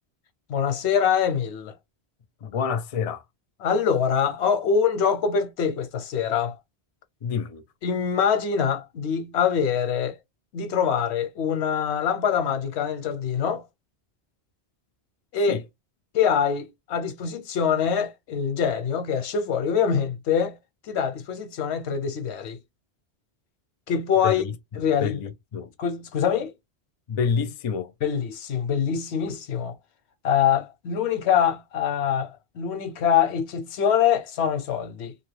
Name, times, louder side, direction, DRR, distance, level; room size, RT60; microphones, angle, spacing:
voice 1, 0.5-1.7 3.6-6.6 7.8-10.2 10.5-13.6 15.3-15.6 16.1-20.6 20.9-22.6 23.9-24.4 24.8-25.2 25.8-26.5 28.0-29.7 30.2-32.3 32.5-35.1, left 7 dB, 90° left, 0.9 m, -24 dB
voice 2, 2.4-3.2 7.2-7.6 15.5-15.6 24.2-25.7 27.1-27.9, left 6 dB, 50° left, 0.4 m, -28 dB
2.8 x 2.2 x 3.1 m
omnidirectional pair, 1.1 m